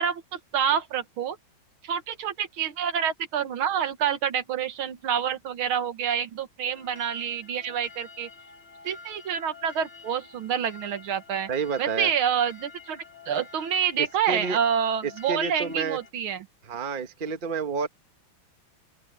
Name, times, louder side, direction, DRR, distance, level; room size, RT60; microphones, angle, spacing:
voice 1, 0.0-1.4 1.8-8.3 8.8-11.5 11.8-16.5, right 8 dB, 75° right, 2.1 m, -27 dB
sound 1, 6.7-16.1, left 4 dB, 30° left, 3.5 m, -49 dB
voice 2, 11.5-12.1 14.0-14.6 15.0-16.0 16.6-17.9, right 5 dB, 30° right, 1.2 m, -30 dB
open air
omnidirectional pair, 2.3 m